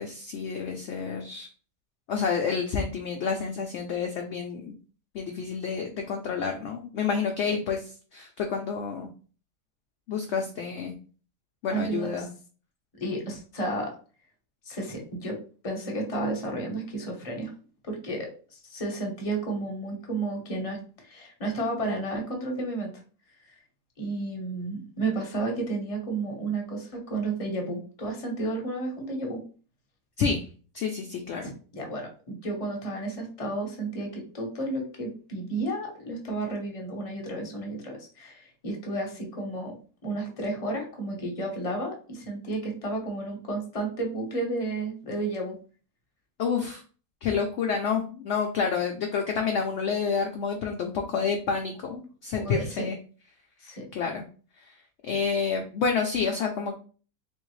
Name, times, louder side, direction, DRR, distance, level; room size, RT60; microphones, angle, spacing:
voice 1, 0.0-1.5 2.1-4.7 5.1-7.8 8.1-9.1 10.1-11.0 11.6-12.3 30.2-30.5 30.7-31.5 46.4-46.8 47.2-53.0 53.9-54.2 54.6-54.7 55.0-56.7, left 5 dB, 65° left, 3 dB, 0.7 m, -29 dB
voice 2, 11.7-12.3 13.0-13.9 14.6-15.4 15.6-17.5 17.8-22.9 24.0-29.4 31.4-39.7 40.0-45.6 52.3-52.9 53.6-53.8, right 2 dB, 25° left, 1 dB, 0.9 m, -32 dB
3.5 x 3.2 x 3.1 m, 0.39 s
omnidirectional pair, 1.6 m